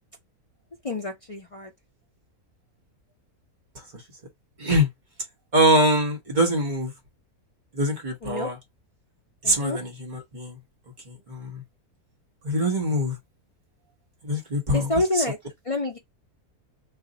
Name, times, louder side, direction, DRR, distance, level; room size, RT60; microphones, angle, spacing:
voice 1, 0.8-1.7 8.2-8.5 9.4-9.8 14.7-15.4 15.6-16.0, left 2 dB, 60° left, 0.3 m, -27 dB
voice 2, 5.5-6.9 7.8-8.5 9.4-10.5 11.3-11.6 12.4-13.1 14.2-14.9, equal, 35° right, 1.0 m, -23 dB
2.7 x 2.5 x 3.9 m
omnidirectional pair, 1.6 m